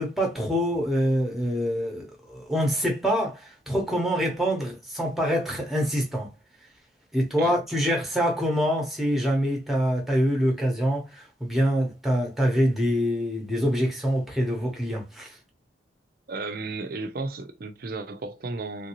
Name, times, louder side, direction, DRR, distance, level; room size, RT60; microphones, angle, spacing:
voice 1, 0.0-6.3 7.1-15.3, equal, ahead, 0.8 m, -25 dB
voice 2, 16.3-18.9, right 3 dB, 50° right, 0.5 m, -34 dB
3.3 x 2.6 x 2.9 m
head